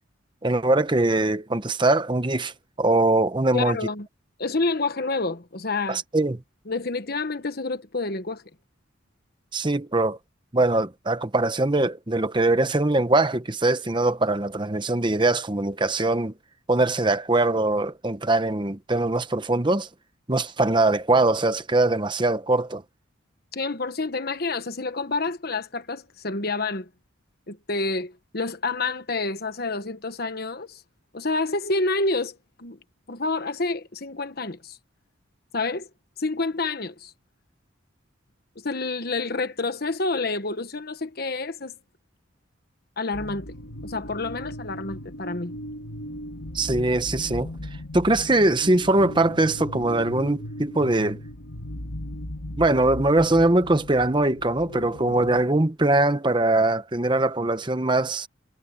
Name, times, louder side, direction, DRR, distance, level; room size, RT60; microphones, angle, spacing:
voice 1, 0.4-3.8 5.9-6.4 9.5-10.2 10.5-16.3 16.7-19.9 20.3-22.8 46.5-47.5 47.9-51.2 52.6-58.3, right 2 dB, 25° right, 0.9 m, -22 dB
voice 2, 3.5-4.1 4.4-6.0 6.7-8.4 23.5-26.9 27.5-30.8 31.1-32.8 33.1-34.8 35.5-35.9 36.2-37.1 38.6-41.7 43.0-43.5 43.8-45.6, left 3 dB, 50° left, 1.3 m, -28 dB
sound 1, 43.1-55.4, left 1 dB, 80° left, 2.7 m, -37 dB
head